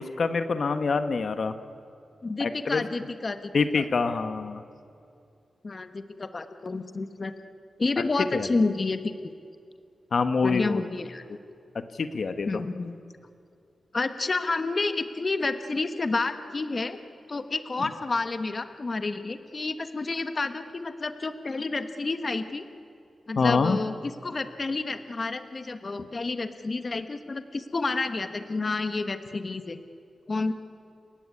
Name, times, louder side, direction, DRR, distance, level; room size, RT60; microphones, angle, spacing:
voice 1, 0.0-1.5 2.4-2.8 3.5-4.6 8.3-8.5 10.1-10.8 12.0-12.5 23.4-23.8, left 4 dB, 60° left, 9 dB, 1.2 m, -25 dB
voice 2, 2.2-3.9 5.6-7.3 7.8-9.1 10.4-11.2 12.4-13.0 13.9-17.0 17.3-22.6 23.3-29.8 30.3-30.5, left 3 dB, 40° left, 9 dB, 1.2 m, -30 dB
29.5 x 17.5 x 9.7 m, 2.5 s
wide cardioid pair, 95°, 0 cm